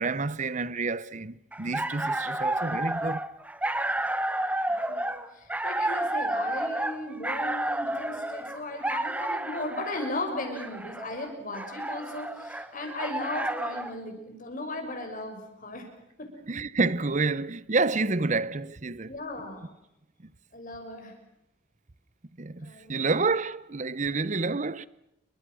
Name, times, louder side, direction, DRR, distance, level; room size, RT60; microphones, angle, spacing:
voice 1, 0.0-3.2 16.5-19.1 22.4-24.9, right 3 dB, 40° right, 0.9 m, -28 dB
sound 1, 1.5-14.0, right 1 dB, 10° right, 1.0 m, -31 dB
voice 2, 4.9-15.9 16.2-16.3 19.1-19.7 20.5-21.1 22.6-23.1, left 2 dB, 45° left, 6.6 m, -36 dB
29.0 x 24.5 x 6.3 m
head